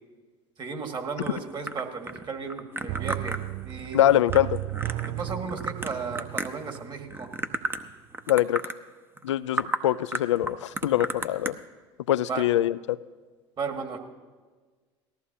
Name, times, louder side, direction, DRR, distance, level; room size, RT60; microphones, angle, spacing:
voice 1, 0.6-3.4 3.6-4.0 5.2-7.3 12.3-12.4 13.6-14.0, right 5 dB, 30° right, 4 dB, 1.8 m, -34 dB
sound 1, 1.2-6.8 7.1-7.9 8.1-8.8 9.2-9.3 9.5-9.8 10.1-11.5, right 2 dB, 15° right, 0.8 m, -33 dB
sound 2, 2.9-7.6 7.9-8.0, right 17 dB, 50° right, 0.4 m, -35 dB
voice 2, 3.9-4.6 8.3-8.6 9.2-11.6 12.1-13.0, left 13 dB, 85° left, 16 dB, 0.4 m, -23 dB
18.5 x 14.0 x 2.8 m, 1.4 s
hypercardioid pair, 75°, 15 cm